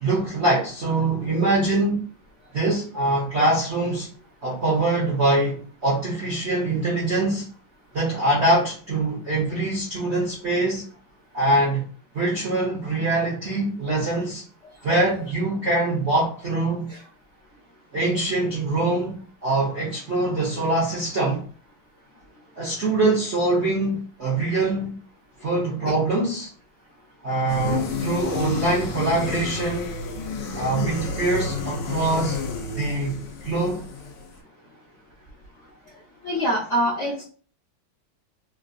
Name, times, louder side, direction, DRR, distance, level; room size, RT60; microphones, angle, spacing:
voice 1, 0.0-2.0 2.5-4.1 4.4-7.4 7.9-10.8 11.3-11.8 12.1-14.4 14.8-16.9 17.9-21.5 22.6-24.9 25.4-26.5 27.2-29.9 30.5-32.4 32.7-33.8, right 2 dB, 55° right, 0.7 m, -23 dB
sound 1, 27.5-34.4, left 4 dB, 70° left, 1.2 m, -30 dB
voice 2, 36.2-37.2, equal, 50° left, 0.9 m, -25 dB
3.8 x 2.3 x 2.5 m
omnidirectional pair, 2.2 m